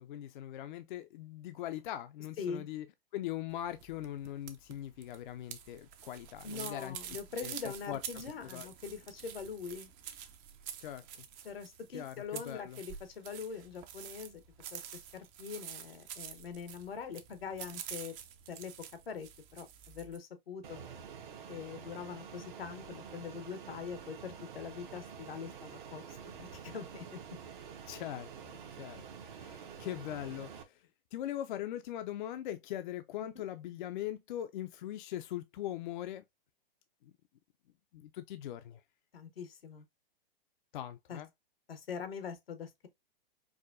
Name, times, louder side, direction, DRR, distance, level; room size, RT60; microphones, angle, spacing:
voice 1, 0.0-2.9 3.1-7.0 7.4-8.0 8.4-8.7 10.8-11.3 11.9-12.8 27.8-29.0 29.3-36.2 37.0-37.1 37.9-38.8 40.7-41.3, left 12 dB, 55° left, 0.4 m, -41 dB
sound 1, 3.5-20.2, right 9 dB, 30° right, 0.4 m, -48 dB
voice 2, 6.4-9.9 11.4-14.4 14.7-14.8 15.1-18.1 18.5-18.7 19.1-20.8 21.5-27.1 33.2-33.3 39.1-39.8 41.1-41.2 41.7-42.9, left 6 dB, 85° left, 0.9 m, -43 dB
Fixed-wing aircraft airplane, 20.6-30.6, right 7 dB, 55° right, 0.8 m, -48 dB
4.7 x 2.2 x 2.4 m
hypercardioid pair, 115°, 29 cm